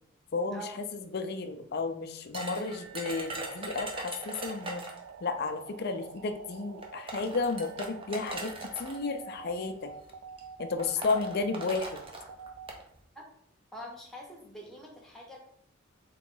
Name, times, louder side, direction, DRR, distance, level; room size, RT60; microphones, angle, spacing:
voice 1, 0.3-4.8 5.2-9.9 10.6-12.0, left 4 dB, 50° left, 7 dB, 0.4 m, -33 dB
sound 1, 2.3-5.1 6.2-6.3 6.8-9.0 9.9-10.1 10.4-10.5 10.8-12.8, right 2 dB, 25° right, 0.6 m, -40 dB
sound 2, 2.9-12.7, right 6 dB, 85° right, 0.3 m, -48 dB
voice 2, 13.7-15.4, equal, ahead, -2 dB, 0.8 m, -45 dB
3.7 x 3.0 x 3.7 m, 0.71 s
head